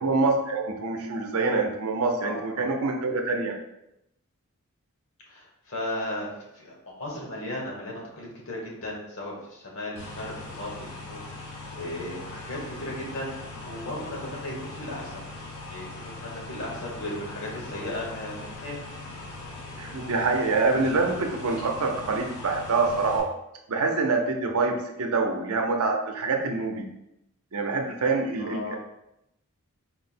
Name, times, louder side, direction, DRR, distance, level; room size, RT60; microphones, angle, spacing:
voice 1, 0.0-3.5 19.8-23.3 23.7-26.8 27.5-28.8, right 3 dB, 80° right, 2 dB, 0.6 m, -26 dB
voice 2, 2.2-2.7 5.3-6.3 6.6-15.2 15.7-18.8 28.4-28.8, left 1 dB, 65° left, -3 dB, 1.2 m, -36 dB
sound 1, 10.0-23.2, left 2 dB, 90° left, 1.2 m, -40 dB
4.3 x 2.1 x 4.2 m, 0.84 s
head